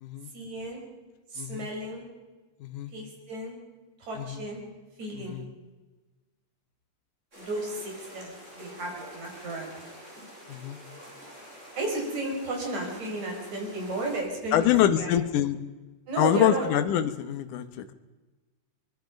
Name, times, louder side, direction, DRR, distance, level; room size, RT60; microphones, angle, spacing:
voice 1, 0.3-0.8 1.3-2.0 2.9-3.5 4.0-4.6 5.0-5.4 7.4-9.7 11.8-15.1 16.1-16.7, right 2 dB, 60° right, 0 dB, 6.4 m, -34 dB
voice 2, 1.4-1.7 2.6-2.9 4.2-4.4 5.2-5.5 10.5-10.8 14.5-15.6 16.2-17.9, left 11 dB, 75° left, 11 dB, 2.6 m, -25 dB
sound 1, 7.3-14.2, equal, 20° right, 7.7 m, -47 dB
24.0 x 22.0 x 5.3 m, 1.2 s
omnidirectional pair, 3.7 m